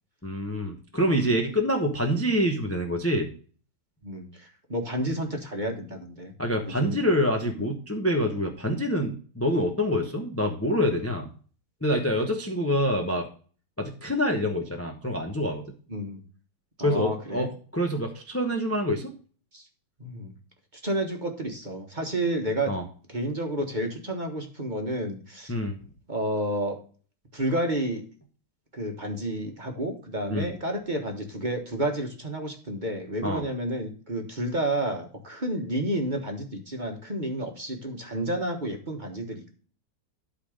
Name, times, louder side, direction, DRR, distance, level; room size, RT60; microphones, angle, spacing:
voice 1, 0.2-3.3 6.4-11.3 11.8-13.3 13.8-15.7 16.8-17.5 17.7-19.1 22.7-22.8 25.5-25.8 30.3-30.5 33.2-33.4, equal, 10° left, 3 dB, 0.7 m, -26 dB
voice 2, 4.0-6.3 6.6-7.1 7.6-7.7 15.9-16.2 16.8-17.5 19.5-19.6 20.0-20.4 20.8-22.7 23.1-25.5 26.1-26.8 27.3-28.0 28.7-39.5, right 1 dB, 25° right, 3 dB, 1.3 m, -30 dB
12.0 x 4.0 x 4.9 m, 0.41 s
omnidirectional pair, 2.2 m